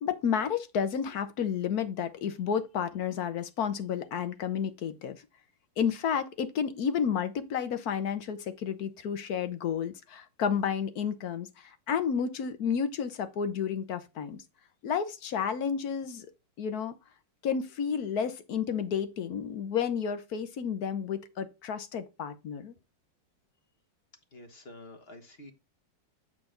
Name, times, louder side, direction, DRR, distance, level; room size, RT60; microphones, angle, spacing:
voice 1, 0.0-5.2 5.8-14.4 14.8-16.3 16.6-16.9 17.4-22.7, left 7 dB, 60° left, 1.4 m, -31 dB
voice 2, 24.3-25.5, left 1 dB, 35° left, 1.5 m, -48 dB
8.6 x 4.6 x 3.8 m
omnidirectional pair, 1.9 m